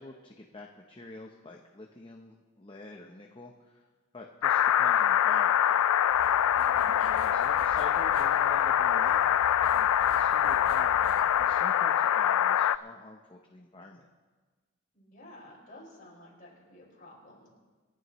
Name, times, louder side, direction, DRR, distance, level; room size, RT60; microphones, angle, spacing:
voice 1, 0.0-3.8 4.1-5.8 7.0-9.4 9.7-11.1 11.3-14.1, left 2 dB, 25° left, 1 dB, 0.8 m, -47 dB
sound 1, 4.4-12.8, left 10 dB, 75° left, 0.3 m, -24 dB
sound 2, 6.1-11.6, right 1 dB, 75° right, 1.2 m, -49 dB
voice 2, 6.5-7.0 14.9-17.5, left 1 dB, 40° left, -5 dB, 5.4 m, -52 dB
28.0 x 11.0 x 3.1 m, 1.3 s
head